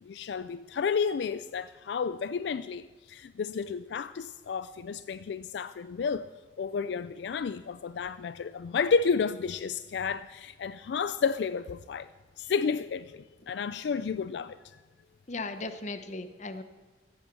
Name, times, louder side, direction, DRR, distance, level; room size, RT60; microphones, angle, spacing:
voice 1, 0.0-6.3 6.6-12.1 12.4-14.8, left 5 dB, 75° left, 0.4 m, -31 dB
voice 2, 15.3-16.6, left 3 dB, 40° left, 0.9 m, -37 dB
15.0 x 8.1 x 6.9 m
head